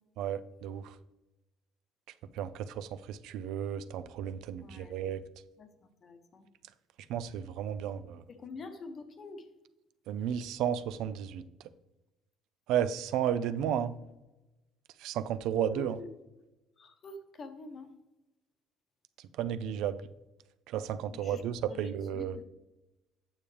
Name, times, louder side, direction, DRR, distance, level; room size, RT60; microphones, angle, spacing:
voice 1, 0.2-0.8 2.4-2.5 2.8-5.2 7.1-8.2 10.1-11.4 12.7-14.0 15.0-16.0 19.4-20.0 20.7-22.4, right 9 dB, 70° right, 12 dB, 0.4 m, -33 dB
voice 2, 4.6-4.9 5.6-6.5 8.3-9.5 15.7-16.1 16.8-17.9 21.1-21.4 21.7-22.4, left 3 dB, 30° left, 8 dB, 0.8 m, -46 dB
8.8 x 7.0 x 3.3 m, 1.0 s
cardioid pair, 155°, 0 cm